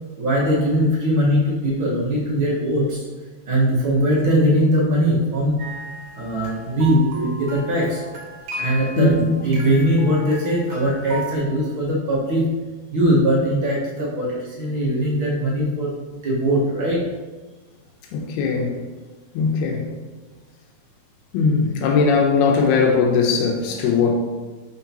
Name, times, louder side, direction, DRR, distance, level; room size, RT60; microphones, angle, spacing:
voice 1, 0.2-3.0 3.5-5.7 6.1-8.0 8.6-12.5 12.9-17.1, equal, 55° right, -6 dB, 1.4 m, -20 dB
sound 1, 5.6-11.4, right 1 dB, 75° right, 1.5 m, -36 dB
voice 2, 9.0-9.3 18.1-18.8 19.3-19.9 21.3-24.1, left 4 dB, 85° left, 1 dB, 2.8 m, -19 dB
11.0 x 4.6 x 2.9 m, 1.3 s
omnidirectional pair, 4.5 m